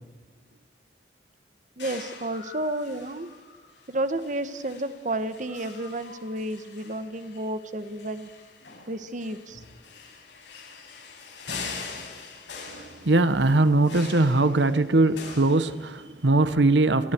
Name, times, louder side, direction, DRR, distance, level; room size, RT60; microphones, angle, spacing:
sound 1, 1.8-16.3, left 5 dB, 90° left, 7.3 m, -43 dB
voice 1, 1.8-3.3 3.9-8.3 8.9-9.6, right 1 dB, 45° right, 11 dB, 1.5 m, -31 dB
voice 2, 12.7-17.1, right 2 dB, 85° right, 12 dB, 1.1 m, -21 dB
29.0 x 23.0 x 4.7 m, 1.1 s
head